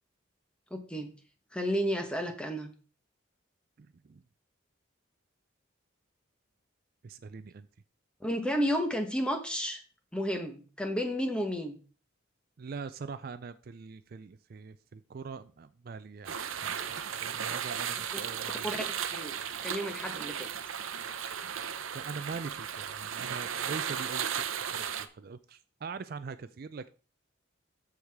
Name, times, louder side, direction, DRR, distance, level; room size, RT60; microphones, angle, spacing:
voice 1, 0.7-1.1 1.5-2.7 8.2-9.8 10.1-11.8 18.6-18.8 19.1-19.3 19.6-20.5, equal, 5° left, 5 dB, 1.1 m, -32 dB
voice 2, 3.8-4.2 7.0-7.7 12.6-18.7 21.9-26.9, right 5 dB, 45° right, 13 dB, 0.4 m, -43 dB
sound 1, 16.3-25.1, right 8 dB, 80° right, 0.7 m, -35 dB
13.5 x 4.8 x 3.5 m, 0.37 s
head